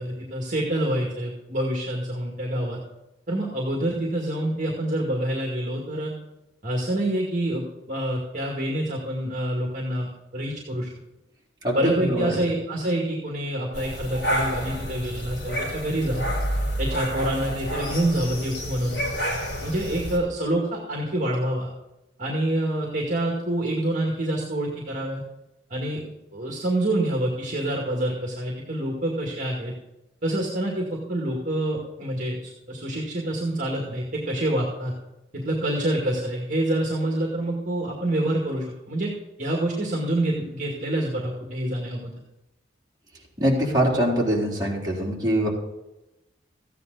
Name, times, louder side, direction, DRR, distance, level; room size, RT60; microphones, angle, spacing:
voice 1, 0.0-2.8 3.3-6.1 6.6-10.9 11.7-16.3 16.8-19.0 19.6-21.7 22.2-25.2 25.7-29.7 30.2-34.9 35.3-39.1 39.4-42.1, right 1 dB, 45° right, -1 dB, 2.1 m, -27 dB
voice 2, 11.6-12.4 43.4-45.5, equal, 25° right, -6 dB, 3.7 m, -23 dB
sound 1, 13.7-20.2, equal, 75° left, 3.3 m, -29 dB
14.5 x 9.3 x 4.0 m, 0.94 s
head